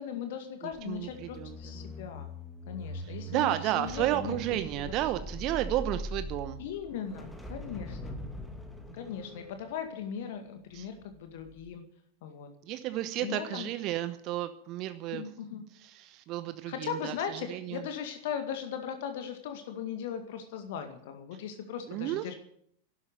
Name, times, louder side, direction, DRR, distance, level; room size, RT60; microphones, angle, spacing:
voice 1, 0.0-2.3 2.7-4.4 4.8-4.9 6.6-8.2 8.9-11.8 12.2-12.5 13.2-13.7 15.1-15.6 16.7-22.4, left 8 dB, 55° left, 7 dB, 2.0 m, -38 dB
sound 1, 0.7-11.0 11.4-11.7, equal, 5° left, 2.4 m, -42 dB
voice 2, 0.8-1.9 3.0-6.6 10.7-10.9 12.6-15.2 15.8-17.8 21.9-22.3, right 14 dB, 40° right, 11 dB, 1.0 m, -32 dB
12.0 x 12.0 x 9.5 m, 0.67 s
figure-of-eight pair, 90°, 0 cm